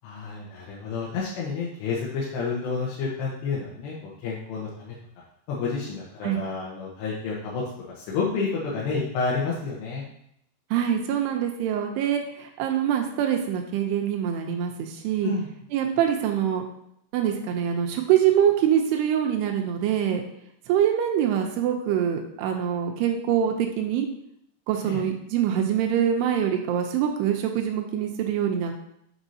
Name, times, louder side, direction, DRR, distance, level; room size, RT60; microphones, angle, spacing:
voice 1, 0.0-5.0 5.5-10.0 15.2-15.5 24.8-25.0, left 4 dB, 75° left, -6 dB, 2.9 m, -30 dB
voice 2, 10.7-15.3 15.7-16.6 17.1-20.2 20.7-24.1 24.7-28.9, right 9 dB, 80° right, 3 dB, 2.5 m, -24 dB
7.0 x 6.2 x 2.8 m, 0.73 s
omnidirectional pair, 5.2 m